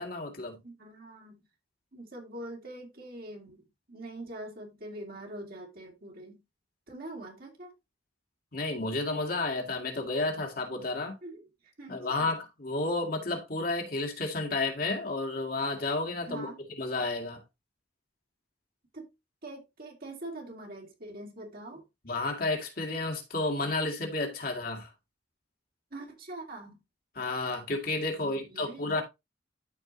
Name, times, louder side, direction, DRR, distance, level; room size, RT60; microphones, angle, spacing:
voice 1, 0.0-0.6 8.5-11.2 11.9-17.4 22.0-24.9 27.2-29.0, left 2 dB, 55° left, 2.3 m, -31 dB
voice 2, 0.6-1.4 1.9-6.4 6.9-7.7 11.2-12.4 16.3-16.6 18.9-19.1 19.4-21.8 25.9-26.8 28.2-29.0, right 1 dB, 55° right, 2.7 m, -44 dB
13.0 x 4.7 x 2.8 m
head